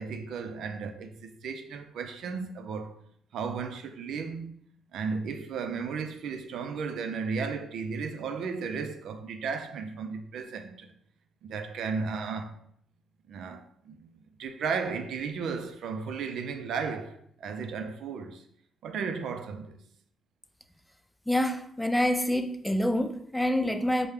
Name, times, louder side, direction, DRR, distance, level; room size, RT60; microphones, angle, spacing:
voice 1, 0.0-2.9 3.3-4.6 4.9-10.9 11.4-12.6 13.3-14.1 14.4-18.5 18.8-19.8, right 5 dB, 75° right, 0.4 m, -34 dB
voice 2, 21.3-24.1, left 1 dB, 5° left, 0.3 m, -27 dB
4.8 x 2.1 x 3.3 m
cardioid pair, 90°, 0 cm